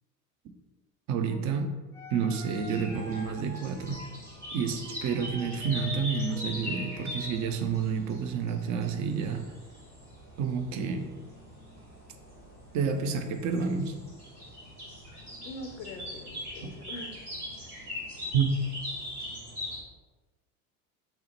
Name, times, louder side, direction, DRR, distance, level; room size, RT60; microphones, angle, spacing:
voice 1, 1.1-1.7 2.1-4.0 4.5-9.5 10.4-11.1 12.7-13.9 16.6-16.7 18.3-18.6, right 5 dB, 40° right, 7 dB, 0.5 m, -29 dB
sound 1, 1.3-1.4 1.9-7.6 8.3-9.2, left 1 dB, 5° left, 0.6 m, -48 dB
sound 2, 2.5-19.8, left 1 dB, 90° right, 1.2 m, -41 dB
voice 2, 15.4-17.2 17.6-17.8, left 2 dB, 60° left, 5 dB, 0.6 m, -43 dB
5.6 x 2.1 x 3.0 m, 1.2 s
figure-of-eight pair, 65°, 44 cm